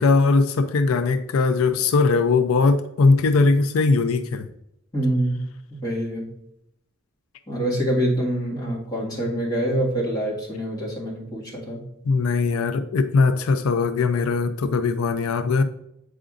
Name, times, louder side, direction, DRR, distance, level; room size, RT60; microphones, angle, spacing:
voice 1, 0.0-4.5 12.1-15.6, left 4 dB, 90° left, 11 dB, 0.4 m, -20 dB
voice 2, 4.9-5.4 5.7-6.3 7.5-11.8, right 1 dB, 20° left, -6 dB, 1.8 m, -25 dB
7.8 x 4.9 x 2.5 m, 0.79 s
head